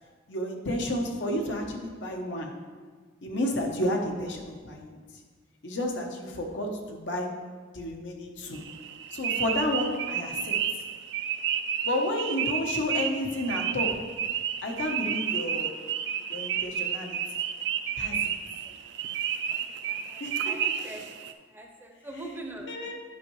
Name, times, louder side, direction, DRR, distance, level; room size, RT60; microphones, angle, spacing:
voice 1, 0.3-2.6 3.2-5.0 5.6-7.4 7.7-8.7 9.1-10.6 11.8-14.0 14.6-15.7 16.3-17.2 18.0-18.4 20.2-20.9 22.7-22.9, left 1 dB, 70° left, 2 dB, 0.9 m, -31 dB
sound 1, 8.5-21.3, right 9 dB, 65° right, 0.4 m, -31 dB
voice 2, 19.8-21.0 21.5-22.7, right 1 dB, 10° right, 1 dB, 0.6 m, -42 dB
9.3 x 5.5 x 3.1 m, 1.5 s
head